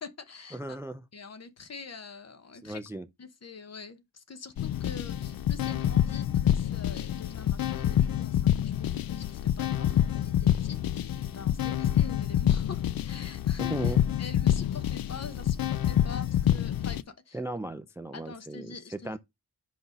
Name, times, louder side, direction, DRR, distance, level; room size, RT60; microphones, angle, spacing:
voice 1, 0.0-0.8 1.1-2.8 3.2-17.4 18.1-19.1, left 4 dB, 45° left, 0.9 m, -45 dB
voice 2, 0.5-1.1 2.6-3.1 13.6-14.0 17.3-19.2, right 1 dB, 5° right, 0.3 m, -36 dB
sound 1, 4.6-17.0, left 11 dB, 70° left, 0.5 m, -27 dB
5.9 x 5.2 x 4.0 m
wide cardioid pair, 165°, 37 cm